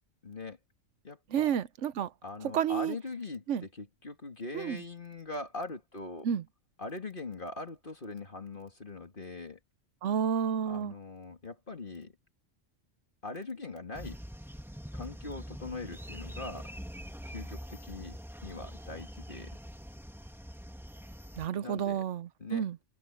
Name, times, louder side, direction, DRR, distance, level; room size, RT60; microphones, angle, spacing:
voice 1, 0.2-0.6 1.0-1.5 2.2-6.3 6.8-9.6 10.7-12.1 13.2-14.2 14.9-16.7 17.3-18.2 18.4-19.6 21.5-22.0 22.4-22.6, left 3 dB, 40° left, 2.4 m, -41 dB
voice 2, 1.3-2.1 2.5-2.9 3.5-3.6 4.5-4.8 6.2-6.4 10.0-10.9 21.4-22.8, right 8 dB, 70° right, 1.1 m, -30 dB
sound 1, 13.9-21.5, equal, ahead, 2.0 m, -44 dB
omnidirectional pair, 1.3 m